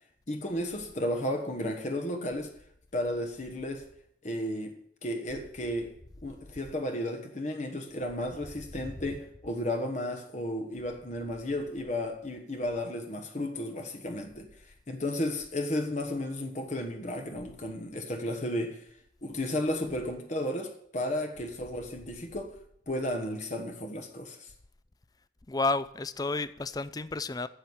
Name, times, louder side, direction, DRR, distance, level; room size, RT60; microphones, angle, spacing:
voice 1, 0.3-2.5 2.9-3.9 4.2-4.7 5.0-6.0 6.2-14.5 14.9-18.8 19.2-22.6 22.9-24.5, left 1 dB, 40° left, 1.2 m, -33 dB
voice 2, 25.5-27.5, left 3 dB, 20° left, 0.4 m, -31 dB
10.0 x 7.3 x 8.0 m
head